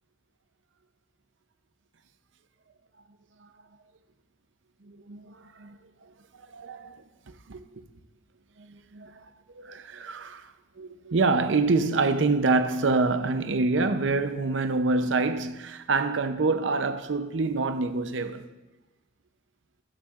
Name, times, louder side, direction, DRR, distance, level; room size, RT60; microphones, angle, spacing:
voice 1, 4.8-7.8 8.6-9.3 9.5-18.4, right 3 dB, 70° right, 0.6 m, -27 dB
12.5 x 8.6 x 2.5 m
head